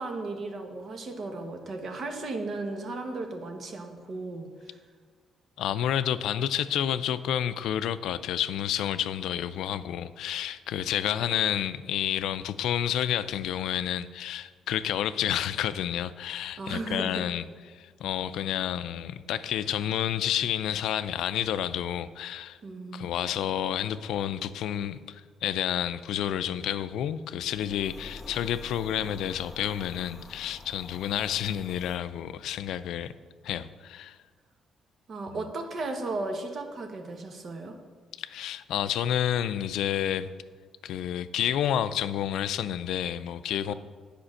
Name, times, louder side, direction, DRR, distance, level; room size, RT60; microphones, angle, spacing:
voice 1, 0.0-4.8 16.6-17.2 22.6-23.1 35.1-37.7 43.7-43.8, right 2 dB, 55° right, 5 dB, 1.3 m, -35 dB
voice 2, 5.6-22.6 22.9-33.1 33.4-34.2 35.3-35.4 38.2-40.3 40.8-43.7, left 10 dB, 80° left, 14 dB, 0.3 m, -30 dB
sound 1, 27.4-32.0, left 2 dB, 15° left, 2.0 m, -47 dB
8.7 x 5.1 x 6.4 m, 1.5 s
cardioid pair, 90°, 0 cm